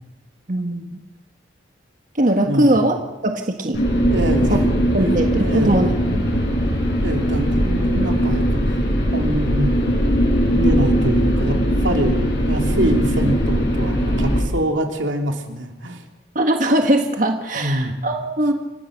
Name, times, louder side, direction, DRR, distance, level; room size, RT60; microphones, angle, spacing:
voice 1, 0.5-0.9 2.2-3.8 4.9-6.2 16.3-18.5, right 1 dB, 45° right, 4 dB, 1.5 m, -20 dB
voice 2, 2.5-2.8 4.1-4.7 5.0-5.9 7.0-8.8 9.1-9.8 10.5-16.0 17.5-17.9, right 1 dB, 85° right, 3 dB, 2.8 m, -25 dB
sound 1, 3.7-14.4, equal, 60° left, 6.9 m, -19 dB
29.0 x 14.5 x 6.6 m, 1.1 s
head